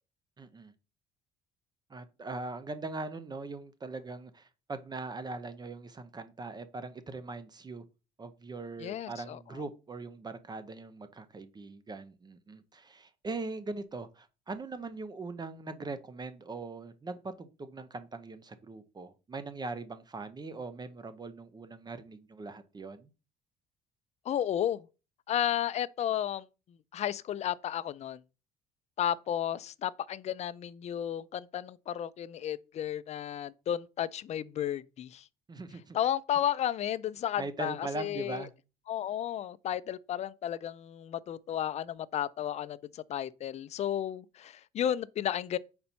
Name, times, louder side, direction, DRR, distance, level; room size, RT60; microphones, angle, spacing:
voice 1, 0.4-0.7 1.9-7.8 8.2-23.1 35.5-36.0 37.4-38.5, right 3 dB, 25° right, 0.7 m, -41 dB
voice 2, 8.8-9.4 24.3-24.9 25.3-26.5 26.9-28.2 29.0-35.3 35.9-38.5 38.9-45.6, left 10 dB, 40° left, 0.4 m, -33 dB
4.3 x 4.2 x 5.5 m
cardioid pair, 110°, 17 cm